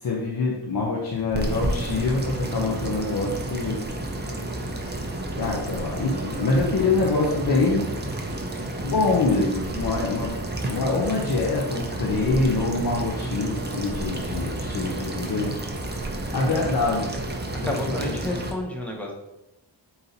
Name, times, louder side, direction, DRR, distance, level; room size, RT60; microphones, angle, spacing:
voice 1, 0.0-3.8 5.3-7.9 8.8-15.5 16.3-17.0 17.6-18.2, left 3 dB, 55° left, -3 dB, 0.7 m, -25 dB
sound 1, 1.1-18.5, right 1 dB, 25° right, 0.5 m, -31 dB
voice 2, 13.0-13.4 16.5-16.6 17.6-19.1, left 1 dB, 5° left, 0 dB, 0.8 m, -31 dB
4.0 x 2.8 x 3.9 m, 0.88 s
wide cardioid pair, 110°, 43 cm